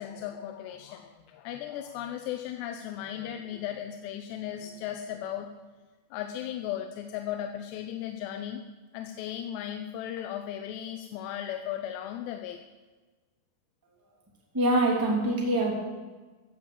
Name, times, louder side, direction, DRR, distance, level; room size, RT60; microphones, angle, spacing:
voice 1, 0.0-5.5 6.1-8.6 8.9-12.6, left 10 dB, 90° left, 5 dB, 2.9 m, -36 dB
voice 2, 14.5-15.7, right 1 dB, 5° right, -2 dB, 2.2 m, -24 dB
15.5 x 7.7 x 8.0 m, 1.3 s
omnidirectional pair, 4.8 m